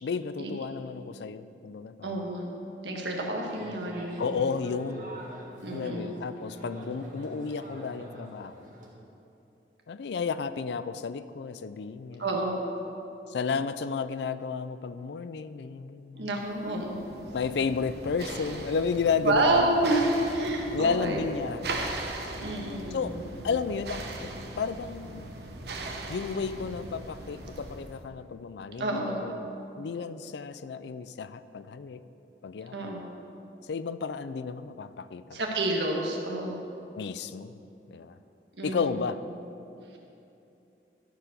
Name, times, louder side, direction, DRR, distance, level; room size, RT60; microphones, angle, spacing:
voice 1, 0.0-2.3 4.2-5.1 5.7-8.7 9.9-12.3 13.3-16.3 17.3-19.8 20.7-22.0 22.9-23.2 23.4-24.3 24.6-25.3 26.1-29.5 29.8-32.0 32.4-32.9 33.6-35.4 36.9-37.6 37.9-38.2 38.6-39.2, left 5 dB, 80° left, 14 dB, 0.4 m, -32 dB
voice 2, 2.0-2.6 2.8-4.4 5.6-6.2 12.2-12.6 16.1-17.1 19.2-21.2 22.4-23.3 28.8-29.2 32.7-33.1 35.3-36.7 38.6-39.0, right 1 dB, 85° right, 0 dB, 1.5 m, -29 dB
sound 1, 3.5-8.9, right 1 dB, 50° right, 1.5 m, -44 dB
sound 2, 16.5-28.0, right 2 dB, 70° right, 1.0 m, -39 dB
13.0 x 4.8 x 6.7 m, 2.8 s
head